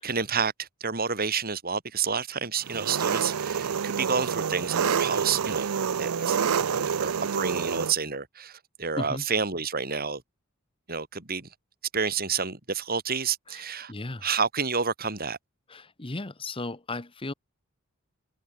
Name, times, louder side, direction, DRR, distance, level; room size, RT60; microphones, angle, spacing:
voice 1, 0.0-5.7 6.0-10.2 10.9-11.5 11.9-13.9 14.2-15.4, right 5 dB, 45° right, 4.2 m, -29 dB
Engine, 2.7-7.9, right 7 dB, 85° right, 0.5 m, -27 dB
voice 2, 13.5-14.3 15.7-17.3, left 2 dB, 25° left, 1.1 m, -36 dB
head